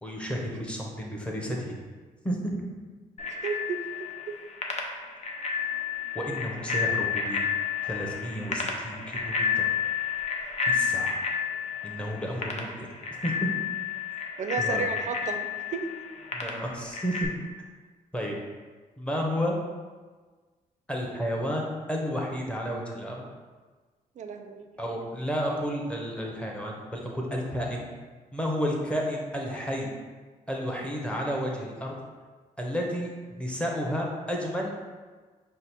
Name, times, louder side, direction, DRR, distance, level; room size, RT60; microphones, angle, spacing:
voice 1, 0.0-1.7 2.2-2.5 6.1-7.5 7.8-9.7 10.6-11.2 11.8-12.9 13.2-13.3 14.6-14.9 16.3-17.3 18.1-18.4 19.0-19.6 20.9-23.2 24.8-27.9 28.3-29.9 30.5-31.9 32.6-34.7, equal, 5° left, -1 dB, 1.0 m, -31 dB
Bicycle bell, 3.2-17.2, left 6 dB, 50° left, 0.7 m, -31 dB
voice 2, 3.3-4.3 14.4-15.9 24.2-24.7, right 6 dB, 55° right, 6 dB, 0.5 m, -33 dB
5.1 x 2.1 x 4.4 m, 1.4 s
cardioid pair, 80°, 15 cm